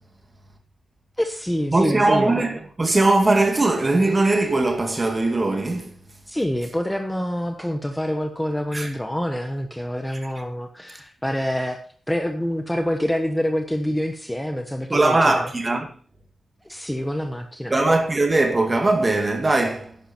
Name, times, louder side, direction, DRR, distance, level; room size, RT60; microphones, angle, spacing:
voice 1, 1.2-2.3 6.3-11.8 12.1-15.5 16.6-17.7, equal, 5° left, 1.0 m, -26 dB
voice 2, 1.7-6.0 8.7-8.9 10.1-10.2 14.9-15.9 17.7-20.0, right 2 dB, 25° right, 2.2 m, -20 dB
11.0 x 10.0 x 4.5 m
wide cardioid pair, 140°, 0 cm